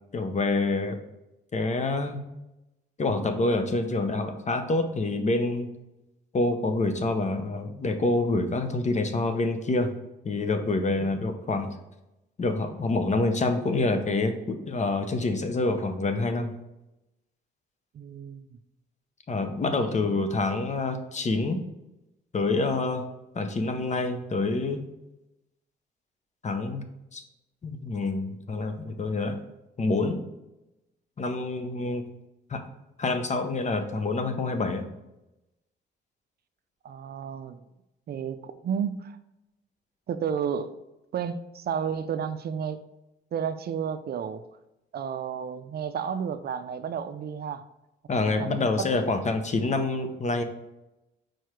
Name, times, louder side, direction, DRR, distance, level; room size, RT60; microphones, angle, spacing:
voice 1, 0.1-1.0 1.5-2.2 3.0-5.7 6.3-9.9 10.2-11.7 12.4-16.5 19.3-21.6 22.3-23.0 23.3-24.8 26.4-26.8 27.1-27.2 27.6-29.4 29.8-30.2 31.2-32.0 32.5-32.6 33.0-34.9 48.1-50.4, left 3 dB, 35° left, 0.9 m, -27 dB
voice 2, 17.9-18.5 19.8-20.1 36.8-37.6 38.1-39.2 40.1-40.8 41.1-42.8 43.3-44.4 44.9-47.6 48.1-48.9, right 7 dB, 50° right, 0.5 m, -32 dB
4.7 x 4.5 x 4.6 m
cardioid pair, 90°, 20 cm